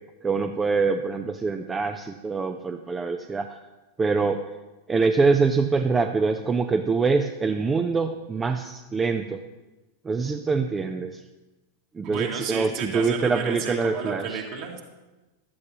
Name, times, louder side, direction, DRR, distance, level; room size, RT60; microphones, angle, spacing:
voice 1, 0.2-3.6 4.0-4.4 4.9-9.4 10.0-11.2 11.9-14.4, right 4 dB, 15° right, 8 dB, 0.5 m, -24 dB
voice 2, 12.0-14.8, right 5 dB, 45° right, 1 dB, 2.1 m, -32 dB
15.0 x 12.0 x 3.0 m, 1.1 s
figure-of-eight pair, 90°, 0 cm